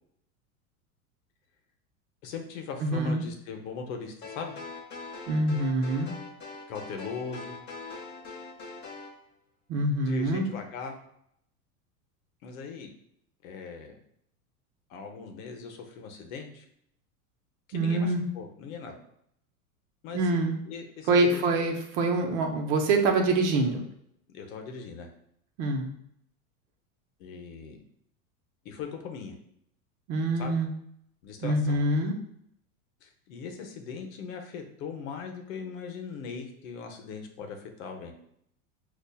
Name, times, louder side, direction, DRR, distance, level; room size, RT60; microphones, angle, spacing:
voice 1, 2.2-4.6 6.7-7.6 10.0-10.9 12.4-12.9 13.4-14.0 14.9-16.7 17.7-18.9 20.0-20.3 20.6-21.7 24.3-25.1 27.2-27.8 28.6-29.3 30.4-30.5 31.2-31.8 33.0-38.1, left 5 dB, 65° left, 4 dB, 0.8 m, -39 dB
voice 2, 2.8-3.2 5.3-6.1 9.7-10.5 17.7-18.2 20.1-20.6 21.1-23.8 25.6-25.9 30.1-30.7 31.4-32.1, right 2 dB, 60° right, 3 dB, 0.8 m, -25 dB
sound 1, 4.2-9.1, left 4 dB, 25° left, 0.7 m, -42 dB
5.3 x 2.4 x 2.2 m, 0.73 s
hypercardioid pair, 110°, 44 cm